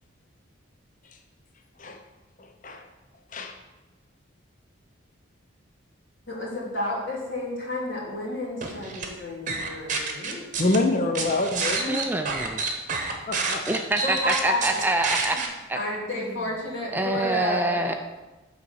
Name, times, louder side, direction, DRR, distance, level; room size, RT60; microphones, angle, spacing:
voice 1, 6.3-10.5 13.7-14.8 15.2-15.4 15.7-17.9, left 1 dB, 60° left, -4 dB, 2.5 m, -31 dB
sound 1, 8.6-9.1 9.5-10.8 11.1-15.5, right 4 dB, 40° right, 1.0 m, -28 dB
voice 2, 10.6-12.0 13.3-13.6, left 2 dB, 40° left, 5 dB, 0.6 m, -25 dB
voice 3, 11.9-12.6 13.7-15.4 15.7-15.8 16.9-17.9, right 2 dB, 10° right, 5 dB, 0.4 m, -26 dB
8.4 x 4.1 x 6.3 m, 1.1 s
head